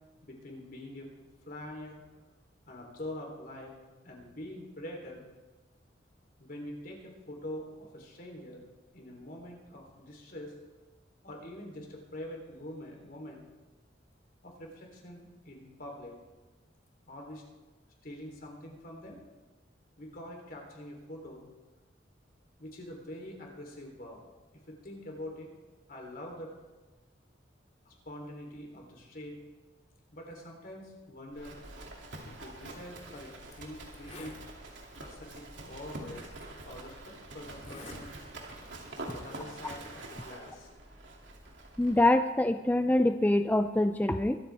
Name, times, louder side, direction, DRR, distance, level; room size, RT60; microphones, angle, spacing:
voice 1, 0.2-1.1 1.5-2.0 2.7-3.7 4.0-5.3 6.4-8.6 8.9-10.5 11.2-13.4 14.4-16.1 17.1-17.4 18.0-19.2 20.0-21.5 22.6-24.2 24.7-25.5 25.9-26.5 27.9-29.4 30.1-31.6 32.3-34.4 35.0-36.3 36.6-38.1 39.0-40.7, left 1 dB, 55° left, 0 dB, 3.5 m, -45 dB
Livestock farm animals working animals, 31.3-42.1, right 2 dB, 90° right, 2.7 m, -46 dB
Zipper (clothing), 32.9-33.0 33.5-33.6 33.9-34.4 35.3-35.4 36.3-36.4 37.5-38.0 38.4-38.7, left 2 dB, 40° left, 2.6 m, -47 dB
voice 2, 41.8-44.4, left 1 dB, 10° left, 8 dB, 0.4 m, -25 dB
23.0 x 13.5 x 3.5 m, 1.2 s
head